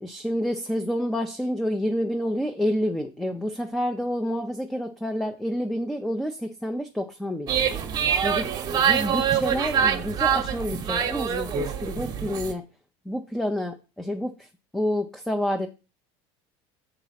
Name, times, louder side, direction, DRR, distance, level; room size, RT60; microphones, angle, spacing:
voice 1, 0.0-7.5 8.0-12.6 13.1-14.5 14.7-15.7, equal, 5° left, 5 dB, 0.5 m, -29 dB
sound 1, 7.5-12.5, right 8 dB, 30° right, 1.0 m, -25 dB
7.3 x 4.0 x 5.7 m, 0.31 s
cardioid pair, 150°, 13 cm